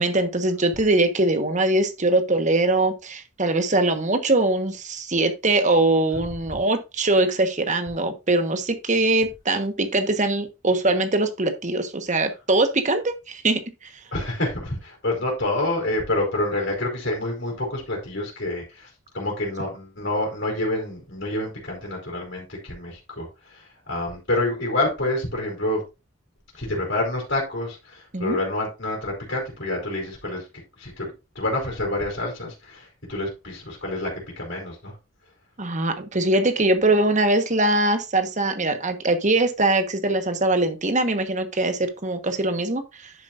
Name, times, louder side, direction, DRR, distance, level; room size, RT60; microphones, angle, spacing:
voice 1, 0.0-13.9 28.1-28.4 35.6-43.1, right 2 dB, 35° right, 1.3 m, -22 dB
voice 2, 14.1-25.8 26.5-30.5 30.8-31.1 31.3-35.0, left 1 dB, 55° left, 4.2 m, -28 dB
10.5 x 7.4 x 2.5 m
head